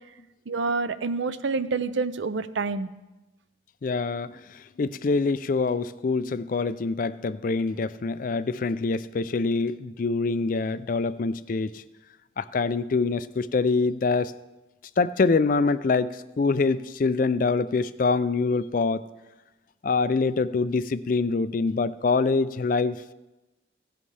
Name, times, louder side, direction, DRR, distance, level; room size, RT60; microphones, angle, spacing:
voice 1, 0.5-2.9, right 4 dB, 75° right, 14 dB, 0.5 m, -27 dB
voice 2, 3.8-11.8 12.4-14.3 15.0-19.1 19.8-23.1, left 4 dB, 45° left, 15 dB, 0.4 m, -25 dB
16.0 x 10.5 x 3.3 m, 1.1 s
head